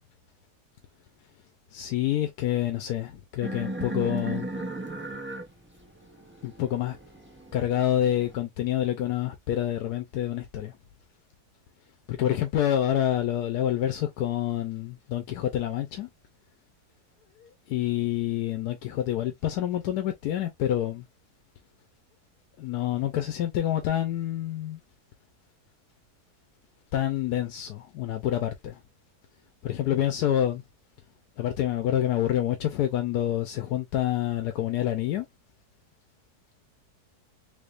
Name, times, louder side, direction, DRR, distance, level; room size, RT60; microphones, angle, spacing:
voice 1, 1.7-4.5 6.4-7.0 7.5-10.8 12.1-16.1 17.4-21.1 22.6-24.8 26.9-28.8 29.6-30.6 31.4-35.3, left 11 dB, 90° left, 1.2 m, -27 dB
sound 1, 3.4-8.4, right 2 dB, 15° right, 0.4 m, -36 dB
3.5 x 3.5 x 2.4 m
omnidirectional pair, 1.7 m